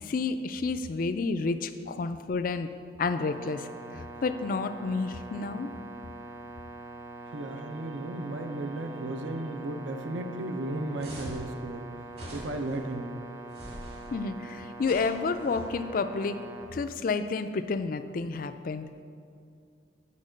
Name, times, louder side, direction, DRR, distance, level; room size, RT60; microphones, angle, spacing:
voice 1, 0.0-2.7 3.0-3.7 3.9-5.7 14.1-16.4 16.7-18.9, left 4 dB, 45° left, 10 dB, 0.3 m, -30 dB
sound 1, 3.0-16.7, right 2 dB, 15° right, 0.5 m, -44 dB
voice 2, 7.3-11.9 12.3-13.2, right 2 dB, 75° right, 6 dB, 0.6 m, -35 dB
sound 2, 11.0-11.5 12.1-12.8 13.5-14.1 14.8-15.6, right 1 dB, 55° right, 2.3 m, -43 dB
8.5 x 4.5 x 6.3 m, 2.3 s
head